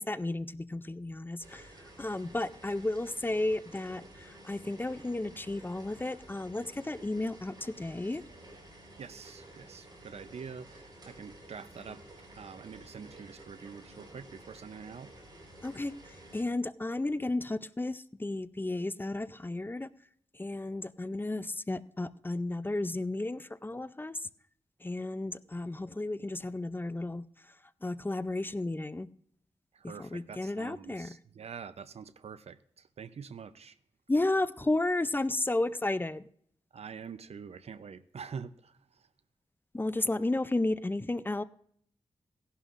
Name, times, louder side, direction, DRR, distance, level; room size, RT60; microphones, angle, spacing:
voice 1, 0.0-1.7 2.0-8.2 15.6-15.9 16.3-19.9 20.4-24.2 24.8-27.2 27.8-29.1 29.8-31.1 34.1-36.2 39.7-41.4, left 2 dB, 20° left, 14 dB, 0.5 m, -33 dB
sound 1, 1.4-16.4, right 1 dB, 40° right, 4.5 m, -52 dB
voice 2, 9.0-12.0 12.3-15.1 29.7-33.7 36.7-38.7, right 6 dB, 70° right, 13 dB, 0.6 m, -45 dB
17.5 x 11.0 x 2.5 m, 0.65 s
wide cardioid pair, 85°, 11 cm